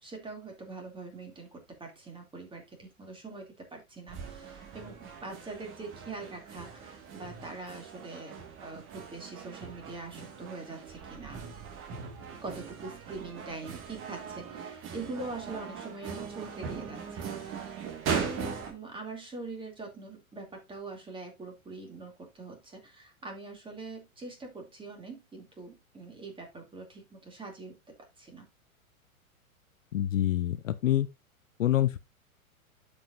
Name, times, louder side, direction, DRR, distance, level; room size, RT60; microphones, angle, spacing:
voice 1, 0.0-11.4 12.4-17.7 18.2-27.8 28.2-28.5, right 3 dB, 10° right, 2.6 m, -43 dB
sound 1, 4.1-18.7, right 6 dB, 30° right, 1.8 m, -40 dB
voice 2, 29.9-31.1 31.6-32.0, left 13 dB, 60° left, 0.8 m, -26 dB
12.0 x 5.2 x 2.6 m
figure-of-eight pair, 105°, 43 cm